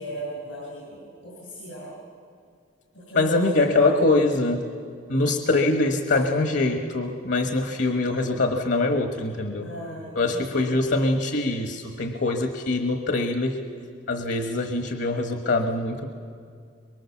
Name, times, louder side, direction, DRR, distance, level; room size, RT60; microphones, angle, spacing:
voice 1, 0.0-1.9 2.9-4.0 6.1-6.2 9.6-10.7, right 1 dB, 90° left, -5 dB, 7.3 m, -37 dB
voice 2, 3.1-4.7 5.1-9.7 10.1-13.6 14.1-16.1, left 2 dB, 60° left, 5 dB, 1.3 m, -23 dB
24.5 x 23.0 x 7.2 m, 2.2 s
head